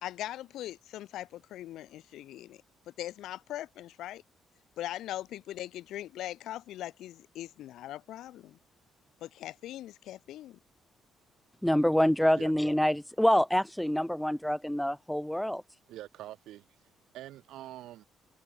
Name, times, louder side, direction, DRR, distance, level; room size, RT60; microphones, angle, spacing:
voice 1, 0.0-2.6 3.0-4.2 4.8-8.6 9.2-10.6, left 13 dB, 85° left, 1.5 m, -40 dB
voice 2, 11.6-15.6, equal, 5° left, 0.8 m, -26 dB
voice 3, 15.9-18.1, right 14 dB, 85° right, 3.5 m, -45 dB
cardioid pair, 90°, 0 cm